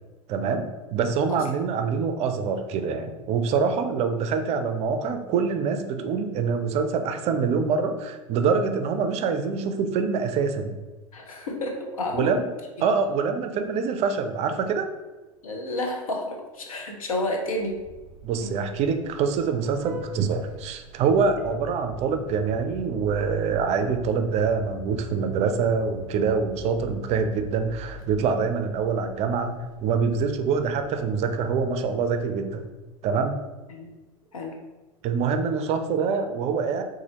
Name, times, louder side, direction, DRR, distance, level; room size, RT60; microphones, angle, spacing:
voice 1, 0.3-10.8 12.1-12.5 12.8-14.9 18.2-32.6 33.0-33.4 35.0-36.8, right 5 dB, 40° right, 7 dB, 0.4 m, -25 dB
voice 2, 1.3-1.7 11.1-12.4 15.4-17.8 18.4-18.5 21.1-21.3 33.7-33.9 34.3-34.6, left 1 dB, 80° left, 2 dB, 0.7 m, -30 dB
Vehicle horn car horn honking, 17.5-32.8, equal, 20° right, 0.9 m, -44 dB
4.0 x 2.5 x 2.9 m, 1.2 s
figure-of-eight pair, 85°, 18 cm